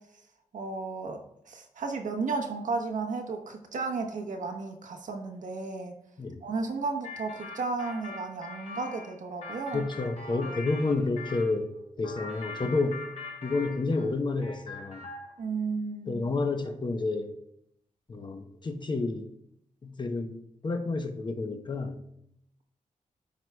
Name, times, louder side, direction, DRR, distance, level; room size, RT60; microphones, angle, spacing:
voice 1, 0.5-1.2 1.5-5.9 6.4-9.8 10.3-10.5 15.4-16.2, right 4 dB, 70° right, 3 dB, 1.1 m, -33 dB
sound 1, 7.0-11.5 12.0-14.1 14.4-15.4, left 3 dB, 55° left, 1.5 m, -42 dB
voice 2, 9.7-13.0 13.4-15.1 16.1-17.3 18.1-19.3 19.8-22.0, left 3 dB, 35° left, 6 dB, 0.8 m, -30 dB
13.5 x 4.8 x 2.2 m, 0.75 s
wide cardioid pair, 150°, 13 cm